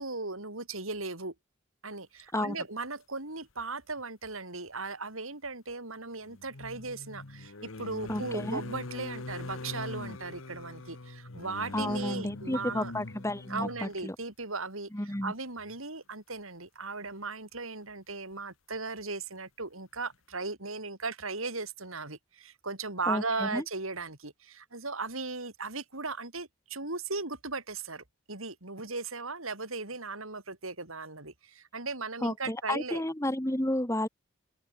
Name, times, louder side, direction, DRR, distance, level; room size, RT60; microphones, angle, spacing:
voice 1, 0.0-1.3 1.8-12.9 13.5-33.0, right 3 dB, 75° right, 6.1 m, -37 dB
sound 1, 4.0-4.1 6.3-13.9 15.1-15.3 15.6-15.8, left 2 dB, 70° left, 1.4 m, -42 dB
voice 2, 8.1-8.6 11.7-14.1 14.9-15.3 23.1-23.6 32.2-34.1, left 1 dB, 15° left, 1.7 m, -32 dB
open air
head